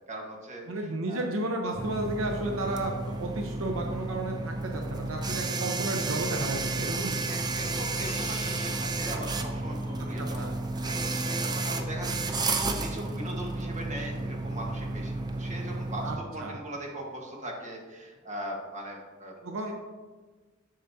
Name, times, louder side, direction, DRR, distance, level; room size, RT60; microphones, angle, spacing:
voice 1, 0.0-1.3 7.3-10.5 10.7-19.4 19.7-19.8, right 1 dB, 35° right, -1 dB, 1.4 m, -40 dB
voice 2, 0.7-7.3 10.2-10.5 16.0-16.6 19.4-19.7, right 2 dB, 80° right, 2 dB, 0.7 m, -33 dB
sound 1, 1.7-16.2, right 2 dB, 20° right, 0.4 m, -32 dB
sound 2, 3.1-3.2 5.6-6.0 7.8-8.8 9.7-10.1, left 3 dB, 25° left, 2.0 m, -47 dB
7.7 x 6.5 x 2.7 m, 1.3 s
head